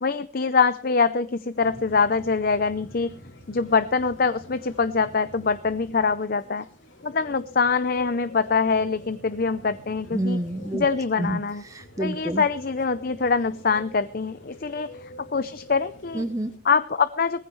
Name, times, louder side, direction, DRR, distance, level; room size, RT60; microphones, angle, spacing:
voice 1, 0.0-3.2 3.5-6.7 7.0-10.4 10.7-11.6 12.0-16.2 16.6-17.5, left 5 dB, 50° left, 12 dB, 0.6 m, -24 dB
sound 1, 1.5-16.6, left 1 dB, 75° left, 2.8 m, -46 dB
voice 2, 10.1-10.9 11.2-12.5 16.1-16.5, right 1 dB, 15° right, 8 dB, 0.8 m, -28 dB
19.0 x 15.0 x 3.2 m, 0.37 s
head